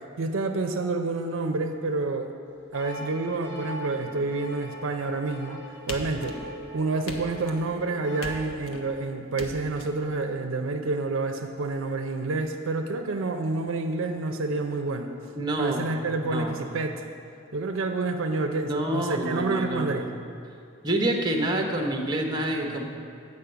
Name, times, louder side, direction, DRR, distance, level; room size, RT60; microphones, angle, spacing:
voice 1, 0.0-2.3 2.7-5.6 5.9-6.4 6.7-15.1 15.6-17.0 17.5-20.1, right 3 dB, 70° right, 5 dB, 0.5 m, -28 dB
sound 1, 2.7-8.3, left 1 dB, 60° left, 1.8 m, -41 dB
sound 2, 5.9-6.7 7.1-7.7 8.2-8.8 9.4-9.9, left 1 dB, 85° left, 1.0 m, -39 dB
voice 2, 15.4-15.9 16.2-16.5 18.6-20.0 20.8-22.8, right 1 dB, 20° right, 2 dB, 0.9 m, -27 dB
8.3 x 5.3 x 7.8 m, 2.5 s
head